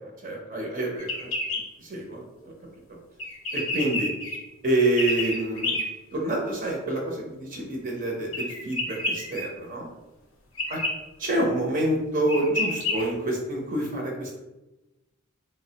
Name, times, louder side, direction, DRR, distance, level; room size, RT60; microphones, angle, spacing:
voice 1, 0.2-1.3 1.8-2.5 2.9-3.0 3.5-4.1 4.6-5.7 6.1-9.9 10.7-10.8 11.2-14.4, right 1 dB, 40° right, -1 dB, 0.5 m, -27 dB
sound 1, 1.0-1.6 3.2-4.4 5.0-5.8 8.3-9.4 10.6-10.9 11.9-12.0 12.3-13.0, left 2 dB, 80° left, 0.6 m, -29 dB
3.1 x 2.0 x 2.7 m, 1.0 s
head